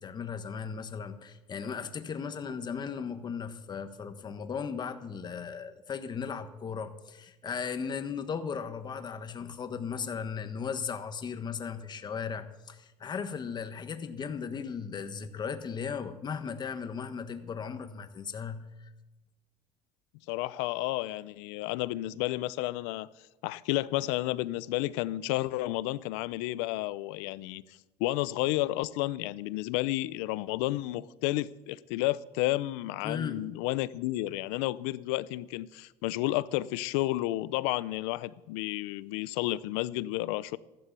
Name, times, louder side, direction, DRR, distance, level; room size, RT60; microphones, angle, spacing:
voice 1, 0.0-18.9 33.0-33.5, left 6 dB, 30° left, 1.4 m, -37 dB
voice 2, 20.3-23.1 23.4-27.6 28.0-40.6, left 17 dB, 90° left, 0.6 m, -31 dB
14.5 x 11.5 x 6.9 m
cardioid pair, 115°, 14 cm